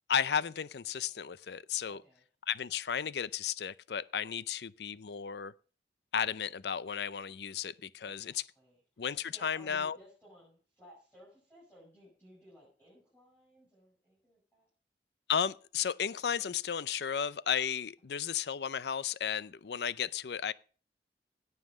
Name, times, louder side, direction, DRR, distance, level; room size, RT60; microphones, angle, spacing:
voice 1, 0.1-2.0 2.5-5.5 6.1-8.4 9.0-10.0 15.3-20.5, left 8 dB, 70° left, 0.5 m, -34 dB
voice 2, 1.9-2.3 8.0-14.7, equal, 10° left, 6.2 m, -59 dB
17.0 x 5.7 x 6.3 m
head